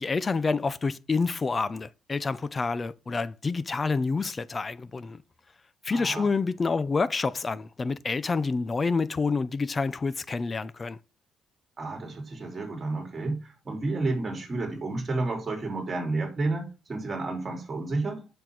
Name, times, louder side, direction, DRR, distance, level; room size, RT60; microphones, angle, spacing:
voice 1, 0.0-5.2 5.8-11.0, left 4 dB, 30° left, 0.6 m, -28 dB
voice 2, 5.9-6.3 11.8-18.3, right 3 dB, 35° right, 4.1 m, -31 dB
7.4 x 6.6 x 4.0 m
cardioid pair, 90°, 0 cm